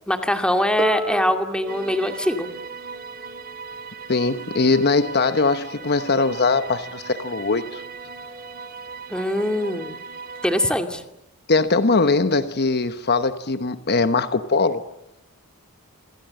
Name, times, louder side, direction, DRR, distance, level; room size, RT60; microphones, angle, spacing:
voice 1, 0.1-2.5 9.1-10.0 10.4-11.0, left 1 dB, 5° left, 2.3 m, -22 dB
Harp, 0.8-6.6 7.6-7.7, right 2 dB, 15° right, 1.6 m, -35 dB
sound 1, 1.7-10.8, right 5 dB, 45° right, 3.9 m, -38 dB
voice 2, 4.1-7.8 11.5-14.9, left 3 dB, 45° left, 1.1 m, -21 dB
27.0 x 26.5 x 7.8 m
head